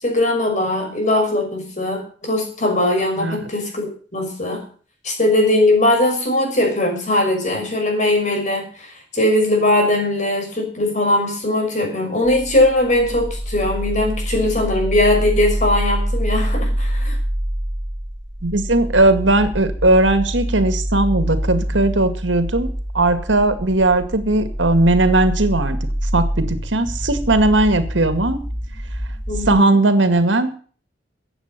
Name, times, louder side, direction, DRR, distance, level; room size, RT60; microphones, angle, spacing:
voice 1, 0.0-4.6 5.0-17.2 29.3-29.7, left 1 dB, 40° left, 3 dB, 6.0 m, -20 dB
sound 1, 12.2-29.6, equal, 20° right, 6.8 m, -25 dB
voice 2, 18.4-25.8 26.1-28.4 29.5-30.5, right 2 dB, 90° right, 10 dB, 2.1 m, -17 dB
15.0 x 8.9 x 6.7 m, 0.42 s
head